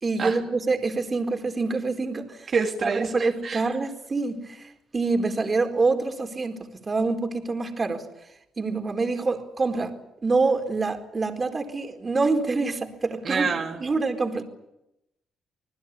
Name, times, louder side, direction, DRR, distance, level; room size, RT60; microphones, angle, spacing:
voice 1, 0.0-2.5 2.8-8.1 8.6-10.0 10.2-13.5 13.8-14.4, right 3 dB, 30° right, 5 dB, 4.3 m, -26 dB
voice 2, 2.5-3.6 13.2-13.8, right 5 dB, 50° right, 0 dB, 3.0 m, -27 dB
27.0 x 20.0 x 8.5 m, 0.85 s
cardioid pair, 90°, 0 cm